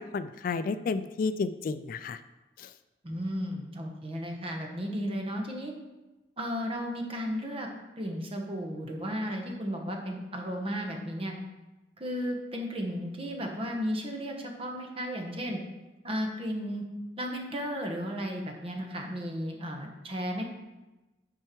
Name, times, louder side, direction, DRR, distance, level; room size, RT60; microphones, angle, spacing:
voice 1, 0.0-2.2 2.6-2.7, left 4 dB, 50° left, 12 dB, 0.3 m, -31 dB
voice 2, 3.0-5.7 6.4-7.7 8.0-11.3 12.0-15.6 16.0-16.8 17.2-20.5, equal, 35° right, 2 dB, 1.2 m, -34 dB
9.9 x 4.5 x 4.6 m, 1.1 s
head